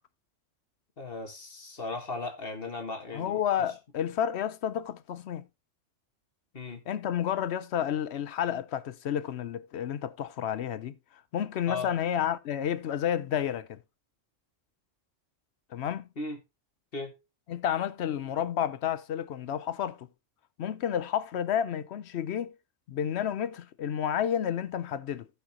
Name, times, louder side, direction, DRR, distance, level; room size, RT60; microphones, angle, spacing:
voice 1, 1.0-3.4 6.5-6.8 11.7-11.9 16.2-16.4 16.9-17.2, left 3 dB, 50° left, 1.7 m, -36 dB
voice 2, 3.1-5.5 6.9-10.9 11.3-13.8 15.7-16.1 17.5-20.1 20.6-22.5 22.9-25.3, left 9 dB, 65° left, 0.8 m, -30 dB
15.5 x 5.6 x 2.8 m
omnidirectional pair, 1.3 m